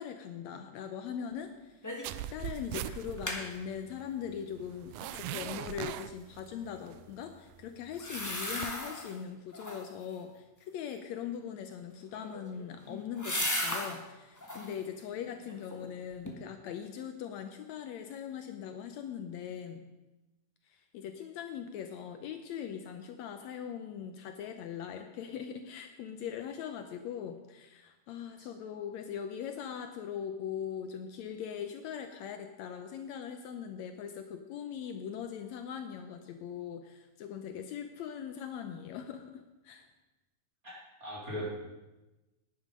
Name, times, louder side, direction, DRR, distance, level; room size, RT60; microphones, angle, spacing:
voice 1, 0.0-1.9 2.3-19.9 20.7-39.9, left 8 dB, 75° left, 7 dB, 1.9 m, -41 dB
sound 1, 1.8-2.2 2.5-2.6 2.9-3.4 7.9-9.1 9.5-10.0 12.0-14.0 14.4-14.8 15.3-15.9 16.3-16.4, left 1 dB, 15° left, 0.6 m, -36 dB
sound 2, 2.0-8.8, right 11 dB, 85° right, 2.0 m, -41 dB
voice 2, 40.6-41.5, equal, 30° right, -6 dB, 3.8 m, -39 dB
11.0 x 10.5 x 5.3 m, 1.1 s
omnidirectional pair, 3.4 m